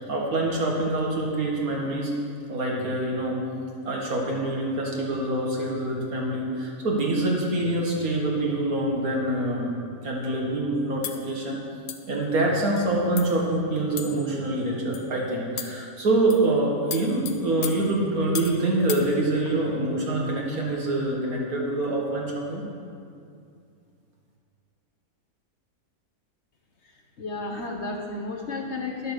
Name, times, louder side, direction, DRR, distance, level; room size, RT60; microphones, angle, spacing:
voice 1, 0.1-2.1 2.5-3.4 3.9-9.7 10.0-11.6 12.0-22.6, right 2 dB, 70° right, -2 dB, 2.2 m, -25 dB
sound 1, 11.0-11.3 11.9-12.1 12.8-12.9 13.2-13.4 14.0-14.3 14.9-15.1 15.6-15.9 16.3-16.5 16.9-18.6 18.9-19.1, left 9 dB, 70° left, 1.1 m, -36 dB
voice 2, 27.2-29.1, left 3 dB, 50° left, 0 dB, 1.4 m, -32 dB
11.0 x 7.6 x 6.6 m, 2.4 s
omnidirectional pair, 1.6 m